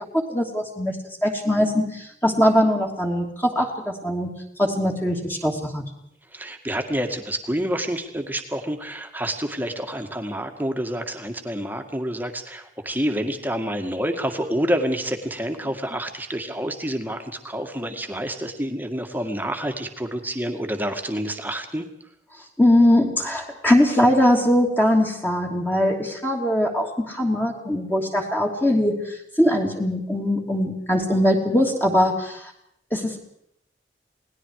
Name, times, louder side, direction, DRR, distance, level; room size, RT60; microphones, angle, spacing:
voice 1, 0.1-1.0 1.2-4.3 4.6-5.8 22.6-32.5 32.9-33.2, left 1 dB, 10° left, 0 dB, 2.9 m, -21 dB
voice 2, 6.3-21.9, equal, 10° right, 5 dB, 2.0 m, -28 dB
28.5 x 19.0 x 4.9 m, 0.72 s
head